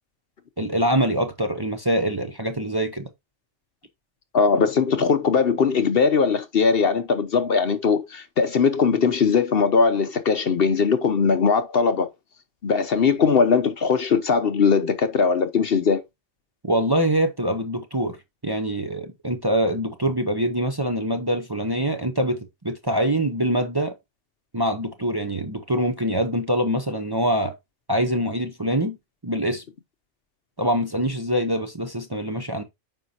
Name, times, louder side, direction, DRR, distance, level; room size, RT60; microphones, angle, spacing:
voice 1, 0.6-3.1 16.6-18.2 18.4-23.9 24.5-27.5 27.9-29.0 29.2-29.6 30.6-32.6, right 1 dB, 20° right, 0.8 m, -24 dB
voice 2, 4.3-12.1 12.6-16.0, left 5 dB, 55° left, 0.9 m, -20 dB
9.2 x 5.3 x 2.8 m
omnidirectional pair, 1.3 m